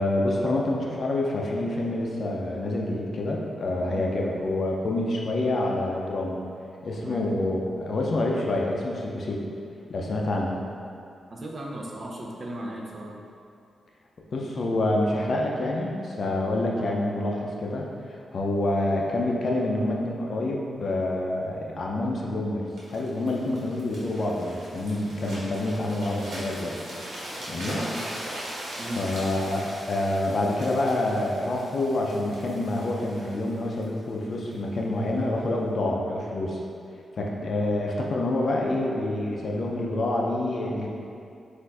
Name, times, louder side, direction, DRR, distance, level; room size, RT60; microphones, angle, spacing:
voice 1, 0.0-6.4 6.8-9.4 9.9-10.6 14.3-17.9 18.3-26.8 27.5-27.8 29.0-36.6 37.2-40.9, left 1 dB, 55° left, -1 dB, 0.5 m, -27 dB
voice 2, 11.3-13.2 27.7-28.0 28.8-29.1 37.2-37.4, right 1 dB, 40° right, -2 dB, 0.5 m, -36 dB
sound 1, 22.8-34.6 35.2-35.4, right 1 dB, 85° right, 1.2 m, -39 dB
4.3 x 2.5 x 4.1 m, 2.5 s
wide cardioid pair, 140°, 0 cm